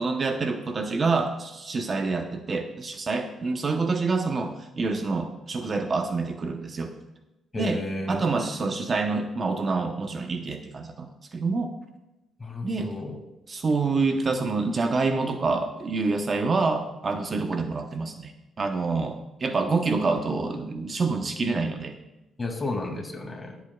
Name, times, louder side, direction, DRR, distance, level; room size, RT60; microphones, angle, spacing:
voice 1, 0.0-6.9 7.6-7.8 8.1-11.7 12.6-12.9 13.5-18.3 18.6-22.0, right 3 dB, 40° right, 5 dB, 0.9 m, -27 dB
voice 2, 7.5-8.2 12.4-13.2 22.4-23.6, left 2 dB, 25° left, 2 dB, 2.5 m, -32 dB
23.0 x 8.2 x 2.4 m, 1.0 s
cardioid pair, 90°, 0 cm